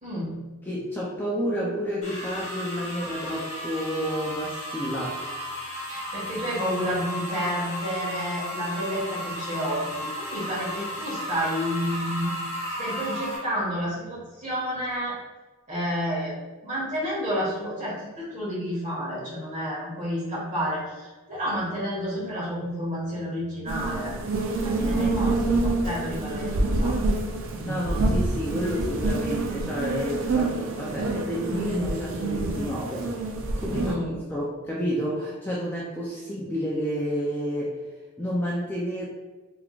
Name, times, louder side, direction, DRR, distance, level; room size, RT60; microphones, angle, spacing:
voice 1, 0.0-0.4 5.9-15.2 15.7-16.3 16.6-24.1 24.6-27.0 33.7-34.2, equal, 35° right, -7 dB, 1.5 m, -30 dB
voice 2, 0.6-5.2 24.8-25.2 27.6-33.2 33.6-34.0 34.3-37.8 38.2-39.0, equal, 10° left, -6 dB, 0.4 m, -30 dB
sound 1, 2.0-13.4, equal, 30° left, 1.3 m, -34 dB
sound 2, 23.7-33.9, right 2 dB, 60° right, 0.5 m, -27 dB
3.5 x 3.4 x 2.4 m, 1.2 s
head